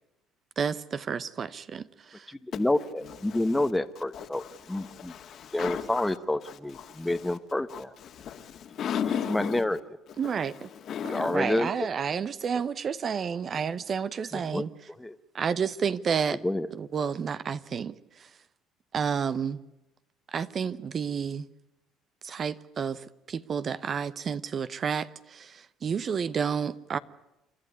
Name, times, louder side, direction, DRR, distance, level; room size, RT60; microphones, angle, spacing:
voice 1, 0.6-2.3 10.2-10.7 11.2-14.7 15.3-16.4 16.8-18.3 18.9-19.6 20.3-21.5 22.2-27.0, right 6 dB, 45° right, 0.9 m, -30 dB
voice 2, 2.3-5.1 5.5-7.9 9.3-9.8 11.0-11.9 14.3-15.2 16.3-16.7, left 1 dB, 10° left, 1.1 m, -29 dB
voice 3, 4.1-6.0 6.4-7.2 7.7-9.6 10.2-11.4, left 8 dB, 55° left, 2.1 m, -36 dB
28.5 x 12.5 x 9.7 m
supercardioid pair, 85°, 0 cm